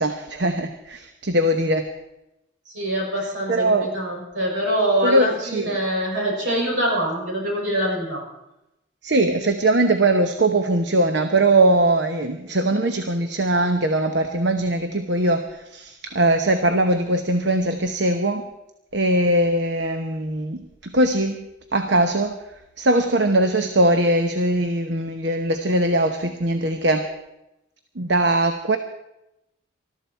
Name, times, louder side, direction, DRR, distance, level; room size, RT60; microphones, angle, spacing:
voice 1, 0.0-1.9 3.5-3.9 5.0-5.8 9.0-18.5 18.9-21.4 21.7-22.4 22.8-27.1 28.0-28.8, right 1 dB, 65° right, 7 dB, 0.9 m, -21 dB
voice 2, 2.7-8.2, right 1 dB, 80° right, -2 dB, 6.5 m, -24 dB
20.5 x 13.0 x 4.6 m, 0.90 s
head